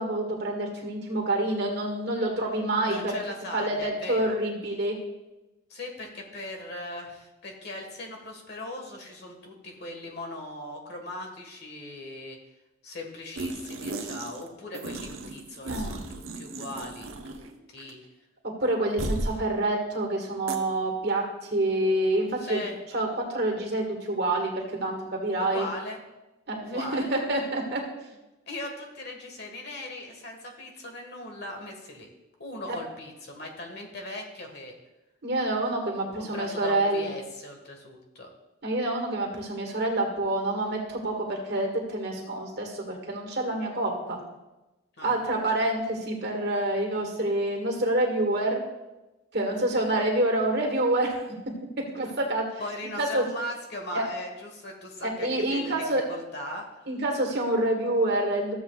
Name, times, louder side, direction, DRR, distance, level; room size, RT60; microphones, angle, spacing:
voice 1, 0.0-3.1 3.5-5.0 15.7-16.0 18.4-21.2 21.5-22.6 22.9-25.7 26.5-27.8 32.7-32.8 35.2-37.1 38.6-44.2 45.0-48.6 49.3-51.2 51.9-52.6 53.0-53.2 53.9-54.1 55.0-56.0 56.9-58.5, right 1 dB, 50° right, 0 dB, 1.8 m, -27 dB
voice 2, 2.9-4.4 5.7-12.4 12.8-18.0 22.4-22.8 25.4-26.0 26.7-27.1 28.5-32.1 32.4-34.7 36.2-38.3 45.0-45.2 51.8-52.2 52.6-56.9, left 1 dB, 50° left, 2 dB, 1.6 m, -39 dB
sound 1, 13.4-14.5 14.7-17.5 17.8-17.9 19.0-19.4 20.5-20.6, right 2 dB, 80° right, 1.0 m, -35 dB
14.5 x 7.8 x 2.4 m, 1.0 s
head